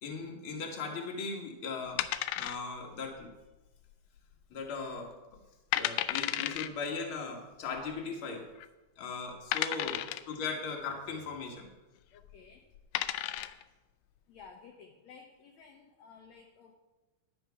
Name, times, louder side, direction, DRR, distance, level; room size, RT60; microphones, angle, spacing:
voice 1, 0.0-2.0 2.3-3.3 4.5-5.4 5.7-8.4 9.0-11.7, left 4 dB, 45° left, 1 dB, 2.1 m, -38 dB
sound 1, 2.0-2.9 3.2-3.3 3.9-4.3 4.7-4.8 5.4-5.5 5.7-6.7 7.8-7.9 8.6-8.7 9.5-10.3 12.2-12.4 12.7-13.6, left 13 dB, 90° left, 2.1 m, -33 dB
voice 2, 12.1-12.7 14.3-16.7, left 5 dB, 70° left, 2 dB, 1.9 m, -54 dB
10.5 x 8.0 x 5.7 m, 1.1 s
omnidirectional pair, 3.6 m